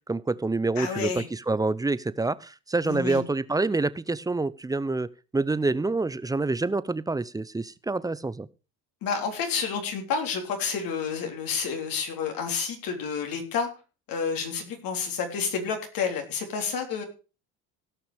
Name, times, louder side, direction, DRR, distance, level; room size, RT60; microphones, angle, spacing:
voice 1, 0.1-8.5, right 3 dB, 10° right, 17 dB, 0.6 m, -27 dB
voice 2, 0.8-1.3 2.9-3.2 9.0-13.7 14.1-17.0, left 5 dB, 65° left, 4 dB, 3.7 m, -30 dB
17.0 x 5.9 x 5.1 m, 0.33 s
supercardioid pair, 100°, 37 cm